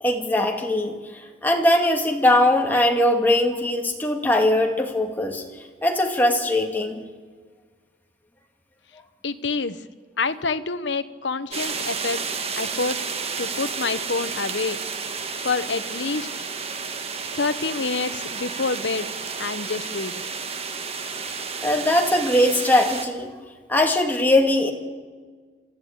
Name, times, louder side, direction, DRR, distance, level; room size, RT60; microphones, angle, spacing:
voice 1, 0.0-5.4 5.8-7.0 21.6-23.3 23.7-24.7, left 1 dB, 10° left, 1 dB, 2.2 m, -20 dB
voice 2, 9.2-9.8 10.2-12.2 12.6-13.0 13.4-14.8 15.4-16.3 17.3-20.2, left 4 dB, 75° left, 12 dB, 1.0 m, -27 dB
sound 1, 11.5-23.1, right 5 dB, 35° right, 1.3 m, -31 dB
29.0 x 13.5 x 8.7 m, 1.5 s
head